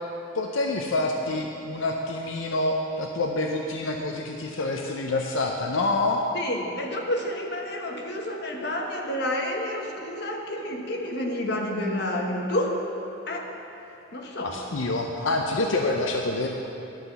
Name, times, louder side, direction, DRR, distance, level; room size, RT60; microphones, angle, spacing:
voice 1, 0.3-6.3 14.4-16.5, left 2 dB, 85° left, 2 dB, 0.6 m, -27 dB
voice 2, 6.3-12.8 13.3-13.5 14.1-14.5, left 1 dB, 55° left, 1 dB, 1.2 m, -29 dB
12.0 x 5.8 x 6.9 m, 2.8 s
head